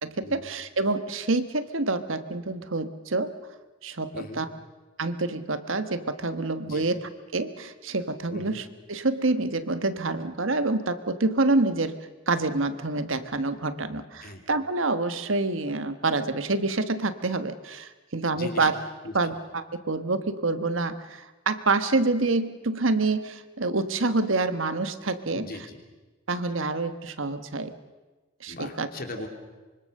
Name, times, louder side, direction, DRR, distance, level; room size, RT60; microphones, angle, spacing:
voice 1, 0.0-3.3 3.8-4.5 5.0-12.0 12.3-18.7 19.1-25.5 26.3-27.7 28.4-28.9, right 3 dB, 70° right, 10 dB, 1.4 m, -27 dB
voice 2, 4.1-4.4 6.6-6.9 8.3-8.6 14.2-14.4 18.3-18.7 19.0-19.3 25.3-25.8 28.5-29.3, left 2 dB, 45° left, 4 dB, 3.2 m, -39 dB
25.0 x 24.0 x 6.6 m, 1.2 s
head